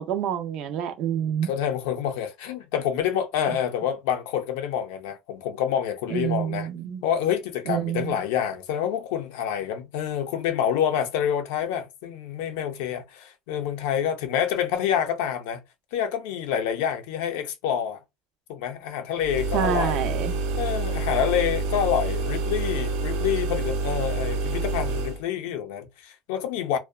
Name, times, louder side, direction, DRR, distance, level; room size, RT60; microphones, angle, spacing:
voice 1, 0.0-1.5 6.1-7.0 7.7-8.2 19.5-20.4, right 9 dB, 45° right, 0.4 m, -27 dB
voice 2, 1.4-6.7 7.0-15.6 15.9-18.0 18.5-20.0 20.6-26.8, left 9 dB, 80° left, 0.5 m, -27 dB
sound 1, 19.2-25.2, right 3 dB, 70° right, 0.8 m, -27 dB
2.6 x 2.1 x 2.3 m
cardioid pair, 175°, 0 cm